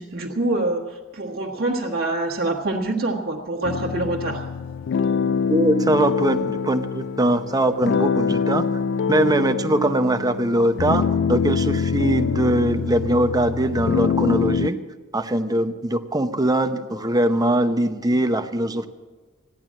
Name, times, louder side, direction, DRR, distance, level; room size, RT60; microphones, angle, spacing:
voice 1, 0.0-4.5, right 2 dB, 50° right, -2 dB, 1.6 m, -25 dB
sound 1, 3.6-14.7, left 6 dB, 60° left, 0.3 m, -24 dB
voice 2, 5.5-8.7 9.1-14.8 15.1-18.9, right 1 dB, 20° right, 8 dB, 0.8 m, -21 dB
15.5 x 10.5 x 7.4 m, 1.4 s
head